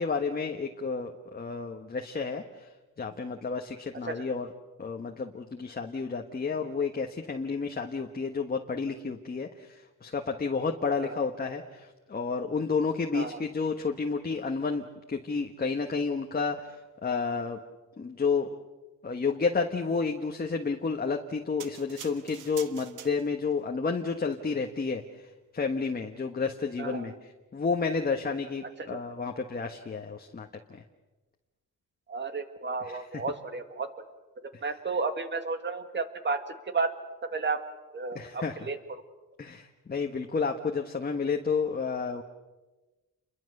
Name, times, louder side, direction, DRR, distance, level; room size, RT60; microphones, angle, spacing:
voice 1, 0.0-2.7 3.0-4.5 4.8-17.6 18.0-18.5 19.0-25.3 25.5-30.8 32.8-33.2 38.1-38.6 39.4-42.2, left 4 dB, 30° left, 3 dB, 1.4 m, -31 dB
sound 1, 21.6-23.6 24.2-24.4, right 8 dB, 70° right, 1.6 m, -45 dB
voice 2, 26.8-27.1 28.8-29.0 32.1-33.9 34.4-36.9 37.3-37.6 37.9-38.8, right 4 dB, 35° right, 8 dB, 2.2 m, -32 dB
29.5 x 22.5 x 6.7 m, 1.2 s
cardioid pair, 130°, 32 cm